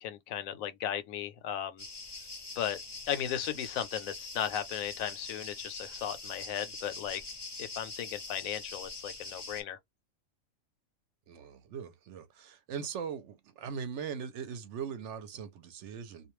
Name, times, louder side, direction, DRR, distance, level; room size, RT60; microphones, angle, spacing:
voice 1, 0.0-1.8 2.6-2.8 3.1-7.2 7.6-9.8, left 10 dB, 85° left, 1.0 m, -36 dB
sound 1, 1.8-9.6, left 3 dB, 30° left, 0.5 m, -44 dB
voice 2, 11.3-16.3, right 7 dB, 70° right, 0.8 m, -40 dB
2.4 x 2.2 x 3.0 m
omnidirectional pair, 1.4 m